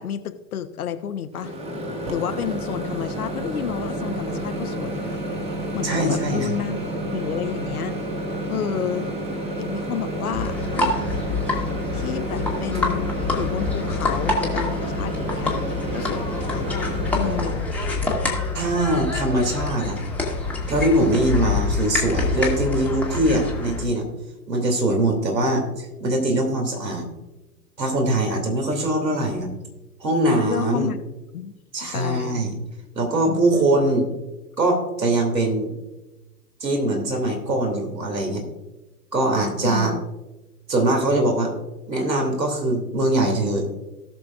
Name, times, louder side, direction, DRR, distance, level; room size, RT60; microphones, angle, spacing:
voice 1, 0.0-1.5 2.1-5.2 5.7-6.8 7.1-8.0 8.5-9.1 9.6-11.0 11.9-15.5 15.9-16.8 17.1-17.7 30.5-31.0 31.3-31.5 31.8-32.5 33.3-33.8 39.6-40.0, left 9 dB, 60° left, 9 dB, 1.0 m, -30 dB
Microwave oven, 1.3-17.6, right 1 dB, 10° right, 1.1 m, -30 dB
voice 2, 5.8-6.5 18.5-20.0 20.7-24.0 24.5-27.1 27.8-29.5 30.0-30.9 31.7-32.5 32.9-34.1 34.6-35.7 36.6-38.5 39.1-39.9 40.7-41.5 41.9-43.7, right 1 dB, 80° right, 2 dB, 2.8 m, -22 dB
sound 1, 10.3-23.8, left 3 dB, 5° left, 1.4 m, -26 dB
18.0 x 6.2 x 2.5 m, 1.1 s
figure-of-eight pair, 110°, 49 cm